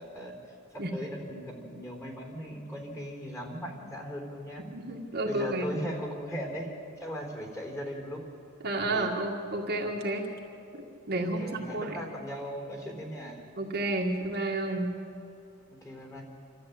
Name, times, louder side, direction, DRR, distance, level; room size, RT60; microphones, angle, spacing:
voice 1, 0.0-4.7 5.2-8.2 8.9-9.1 11.2-13.4 15.8-16.2, equal, 15° left, 1 dB, 4.0 m, -38 dB
voice 2, 4.7-5.7 8.6-10.3 11.1-12.0 13.6-14.9, right 2 dB, 50° right, 0 dB, 2.0 m, -31 dB
28.0 x 13.5 x 8.6 m, 2.6 s
head